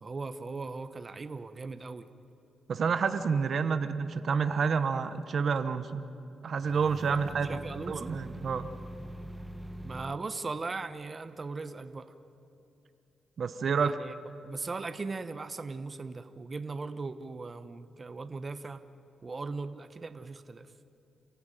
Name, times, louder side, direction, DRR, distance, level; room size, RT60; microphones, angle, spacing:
voice 1, 0.0-2.1 7.1-8.2 9.8-12.1 13.7-14.1 14.4-18.8 19.2-20.7, right 3 dB, 35° right, 11 dB, 0.9 m, -39 dB
voice 2, 2.7-6.0 6.4-7.6 7.9-8.7 13.4-14.0, right 5 dB, 60° right, 11 dB, 1.0 m, -29 dB
sound 1, 6.6-10.2, right 1 dB, 5° right, 1.2 m, -43 dB
29.5 x 14.0 x 9.1 m, 2.8 s
cardioid pair, 85°, 0 cm